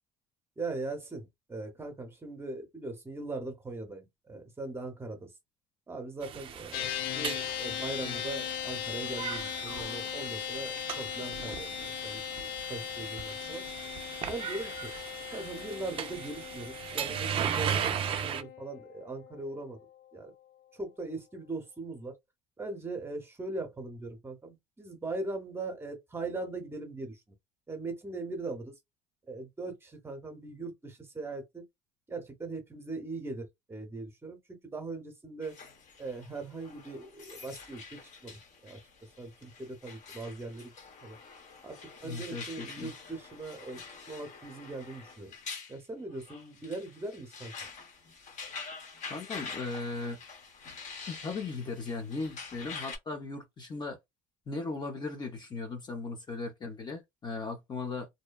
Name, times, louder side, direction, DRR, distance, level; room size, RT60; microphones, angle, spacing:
voice 1, 0.6-5.3 5.9-13.6 14.3-14.9 15.3-19.8 20.1-20.3 20.7-22.2 22.6-27.2 27.7-28.8 29.3-31.6 32.1-35.6 36.0-38.8 39.2-40.7 41.0-41.2 41.6-43.8 44.1-45.3 45.7-47.5, right 2 dB, 15° right, 0.8 m, -40 dB
sound 1, 6.2-18.4, right 8 dB, 35° right, 0.4 m, -37 dB
sound 2, 6.7-20.3, left 11 dB, 75° left, 0.4 m, -39 dB
sound 3, 35.4-53.0, left 5 dB, 50° left, 0.9 m, -46 dB
voice 2, 42.0-42.9 49.1-50.2 51.1-54.0 54.5-58.1, left 3 dB, 30° left, 0.6 m, -37 dB
2.7 x 2.1 x 2.2 m
cardioid pair, 130°, 16 cm